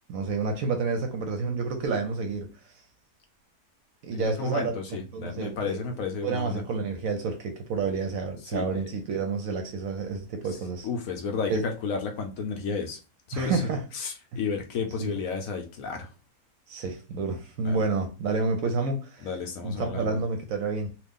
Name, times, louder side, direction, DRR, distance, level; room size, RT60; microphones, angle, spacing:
voice 1, 0.1-2.5 4.0-5.8 6.2-10.9 11.5-11.6 13.3-13.8 15.0-15.1 16.7-19.3 19.6-20.9, right 4 dB, 65° right, 0.9 m, -29 dB
voice 2, 4.1-6.6 8.4-8.9 10.5-10.6 10.8-13.0 13.3-13.6 13.9-16.1 17.6-17.9 19.2-20.2, left 5 dB, 70° left, 0.9 m, -32 dB
3.0 x 2.3 x 3.5 m
omnidirectional pair, 1.8 m